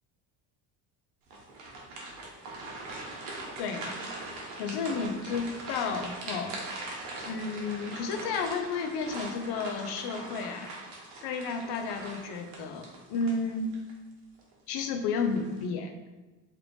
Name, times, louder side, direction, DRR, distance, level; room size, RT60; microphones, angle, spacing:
sound 1, 1.3-13.9 14.4-14.5 15.1-15.6, right 2 dB, 85° right, 1.0 m, -41 dB
voice 1, 3.6-4.1 4.6-6.6 7.2-10.7 11.2-13.7 14.7-15.9, left 4 dB, 55° left, 5 dB, 0.6 m, -32 dB
3.3 x 2.4 x 3.3 m, 1.2 s
supercardioid pair, 85°, 47 cm